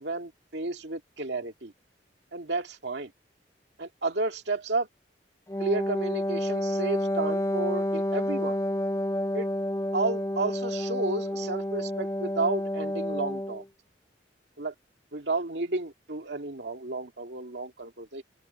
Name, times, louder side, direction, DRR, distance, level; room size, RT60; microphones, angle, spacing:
voice 1, 0.0-1.7 2.3-3.1 3.8-4.9 5.6-8.6 9.3-9.5 9.9-13.6 14.6-14.7 15.1-18.2, right 3 dB, 70° right, 2.3 m, -32 dB
Wind instrument woodwind instrument, 5.5-13.6, left 1 dB, 15° left, 0.6 m, -29 dB
head